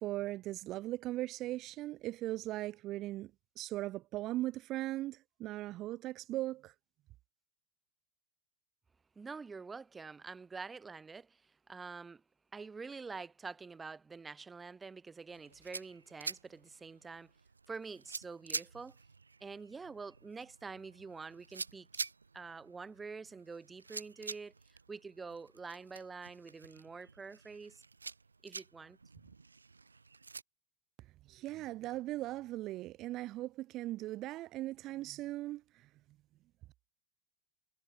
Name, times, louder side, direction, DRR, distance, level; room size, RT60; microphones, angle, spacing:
voice 1, 0.0-3.3 3.6-6.7 31.3-35.6, right 16 dB, 35° right, 1.3 m, -39 dB
voice 2, 9.2-11.4 11.7-12.2 12.5-17.3 17.7-18.9 19.4-22.1 22.3-27.8 28.4-29.0, right 4 dB, 15° right, 2.8 m, -47 dB
sound 1, 15.3-30.4, right 4 dB, 75° right, 2.2 m, -47 dB
figure-of-eight pair, 90°, 0 cm